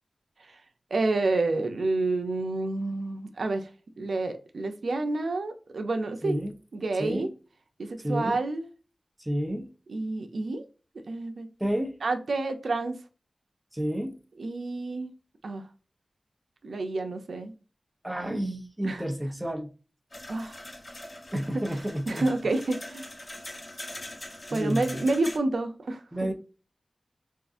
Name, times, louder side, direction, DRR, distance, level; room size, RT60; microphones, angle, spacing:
voice 1, 0.9-3.7 4.0-6.4 6.7-7.3 7.8-8.7 9.9-10.6 11.1-11.5 12.0-13.0 14.4-15.1 15.4-15.7 16.6-17.5 18.8-19.0 20.3-20.6 22.1-23.1 24.5-26.0, right 2 dB, 90° right, 0.6 m, -29 dB
voice 2, 8.0-8.4 9.2-9.7 11.6-11.9 13.7-14.2 18.0-19.7 21.3-22.3 24.5-25.0 26.1-26.3, equal, 15° right, 0.9 m, -30 dB
sound 1, 20.1-25.4, left 1 dB, 40° left, 1.0 m, -42 dB
3.7 x 2.4 x 2.5 m
wide cardioid pair, 55°, 0 cm